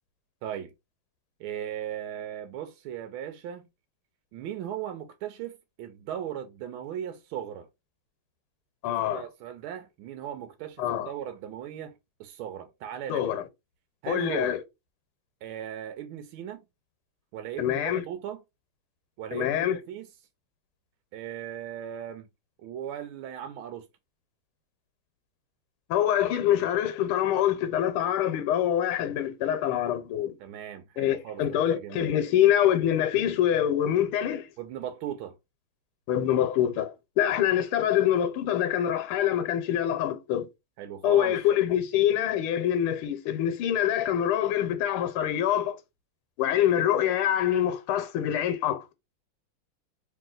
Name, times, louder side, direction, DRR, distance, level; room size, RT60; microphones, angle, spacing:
voice 1, 0.4-0.7 1.4-3.7 4.3-7.7 8.8-11.9 12.2-13.3 14.0-14.5 15.4-16.6 17.3-18.4 19.2-20.1 21.1-22.3 22.6-23.9 30.4-31.4 31.7-32.1 34.6-35.4 40.8-41.4, right 10 dB, 80° right, 1.4 m, -37 dB
voice 2, 8.8-9.2 10.8-11.1 13.1-13.4 14.1-14.6 17.6-18.0 19.3-19.8 25.9-30.3 31.0-34.5 36.1-40.5 41.0-45.8 46.4-48.8, left 11 dB, 80° left, 1.6 m, -25 dB
3.2 x 3.0 x 3.8 m
omnidirectional pair, 2.4 m